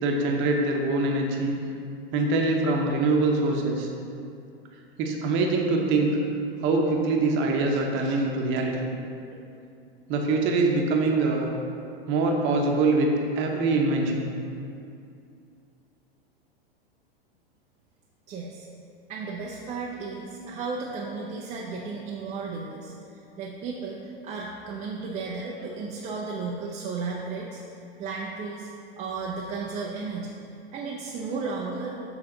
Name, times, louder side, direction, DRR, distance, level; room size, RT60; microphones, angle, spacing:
voice 1, 0.0-1.6 2.1-3.9 5.0-6.1 6.6-8.9 10.1-11.5 12.1-13.1 13.4-14.3, right 3 dB, 40° right, 1 dB, 0.9 m, -24 dB
voice 2, 18.3-18.7 19.1-27.6 28.0-28.7 29.0-30.4 30.7-32.0, right 4 dB, 25° right, -2 dB, 0.5 m, -34 dB
7.6 x 3.8 x 3.8 m, 2.5 s
hypercardioid pair, 105°, 30 cm